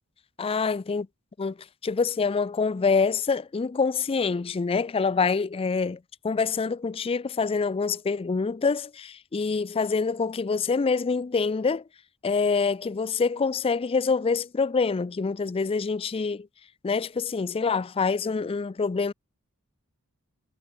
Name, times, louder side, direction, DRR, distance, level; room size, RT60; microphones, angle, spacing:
voice 1, 0.4-1.1 1.4-1.6 1.8-11.8 12.2-16.5 16.8-19.1, left 4 dB, 25° left, 0.4 m, -26 dB
head